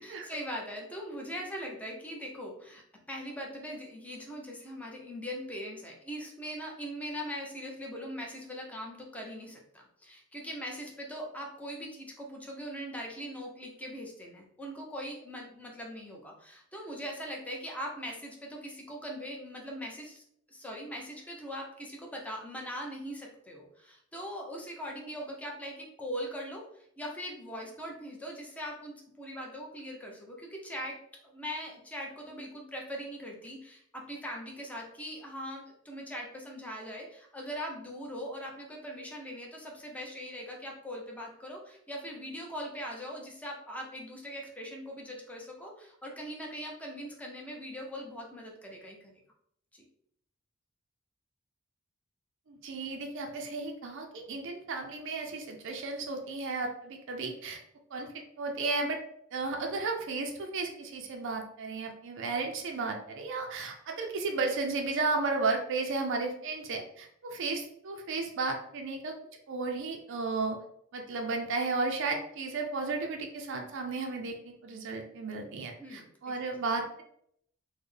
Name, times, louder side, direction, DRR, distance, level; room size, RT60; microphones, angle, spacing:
voice 1, 0.0-2.8 3.1-20.2 20.5-31.0 31.2-49.1 49.7-49.8 75.8-76.4, equal, 5° left, -1 dB, 0.7 m, -41 dB
voice 2, 52.5-57.6 57.9-59.0 59.3-69.1 69.5-70.6 70.9-77.0, right 3 dB, 60° right, 3 dB, 0.4 m, -34 dB
4.1 x 2.1 x 3.2 m, 0.71 s
head